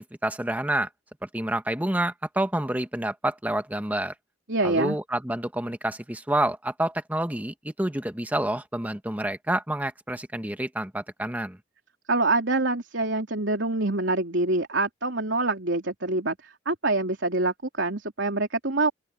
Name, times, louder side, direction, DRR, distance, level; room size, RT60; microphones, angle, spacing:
voice 1, 0.2-0.9 1.2-4.1 4.6-11.6, right 1 dB, 10° right, 1.3 m, -28 dB
voice 2, 4.5-5.0 12.1-18.9, right 2 dB, 75° right, 3.3 m, -25 dB
open air
head